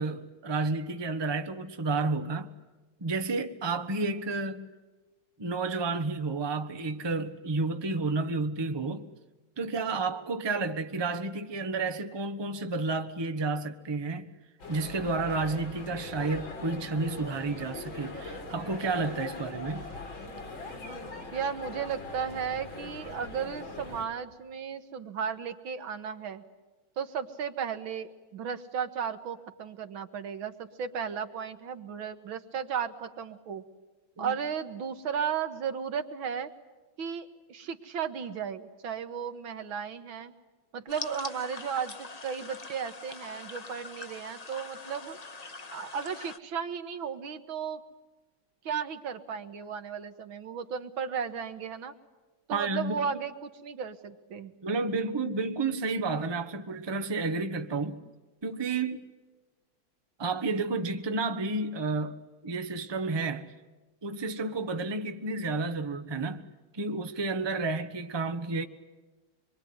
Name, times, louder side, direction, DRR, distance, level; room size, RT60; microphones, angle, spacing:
voice 1, 0.0-2.6 3.0-4.7 5.4-9.1 9.6-14.3 14.7-19.9 34.2-34.3 52.5-53.0 54.6-58.0 58.4-59.0 60.2-62.2 62.4-63.5 64.0-66.5 66.7-68.6, right 3 dB, 20° right, 0.9 m, -31 dB
sound 1, 14.6-24.0, left 2 dB, 85° left, 4.0 m, -41 dB
voice 2, 21.3-26.4 27.0-33.6 34.2-36.5 37.0-40.3 40.7-45.2 45.7-47.8 48.6-51.9 52.5-54.5, right 7 dB, 85° right, 2.2 m, -35 dB
sound 2, 40.9-46.4, left 3 dB, 30° left, 0.7 m, -43 dB
25.5 x 23.0 x 9.5 m
omnidirectional pair, 2.1 m